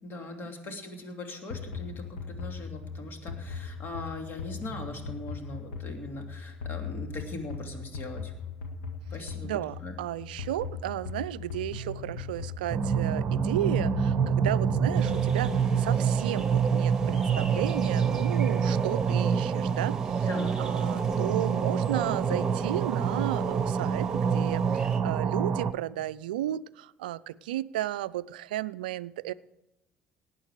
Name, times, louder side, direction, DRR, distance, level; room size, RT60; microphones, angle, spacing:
voice 1, 0.0-8.3 9.1-9.9 20.3-20.5, left 2 dB, 45° left, 4 dB, 2.8 m, -40 dB
sound 1, 1.5-15.7, left 5 dB, 75° left, 1.7 m, -39 dB
voice 2, 9.4-20.3 20.6-29.3, right 13 dB, 75° right, 19 dB, 0.4 m, -34 dB
sound 2, 12.7-25.7, right 7 dB, 40° right, 0.8 m, -27 dB
sound 3, 14.9-25.0, right 3 dB, 10° right, 2.0 m, -37 dB
18.5 x 8.9 x 4.9 m, 0.94 s
figure-of-eight pair, 55°, 5 cm